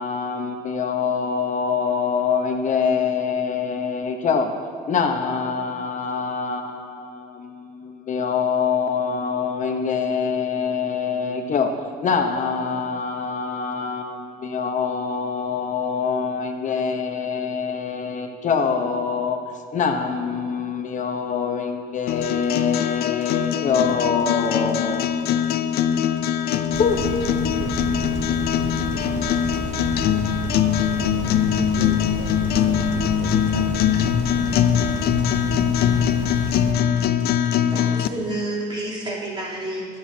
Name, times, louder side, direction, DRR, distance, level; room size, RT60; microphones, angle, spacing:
voice 1, 0.0-4.5 4.9-11.7 12.0-19.4 19.7-25.0 26.3-26.5 26.8-27.0 27.4-27.8, left 6 dB, 50° left, 5 dB, 0.9 m, -25 dB
sound 1, 22.1-38.1, left 10 dB, 70° left, 0.5 m, -22 dB
sound 2, 26.7-36.7, right 4 dB, 50° right, 0.9 m, -31 dB
voice 2, 30.9-33.9, right 10 dB, 90° right, 9 dB, 0.5 m, -37 dB
voice 3, 37.6-40.0, right 1 dB, 30° right, -5 dB, 3.1 m, -30 dB
21.0 x 7.7 x 2.8 m, 2.2 s
cardioid pair, 110°, 17 cm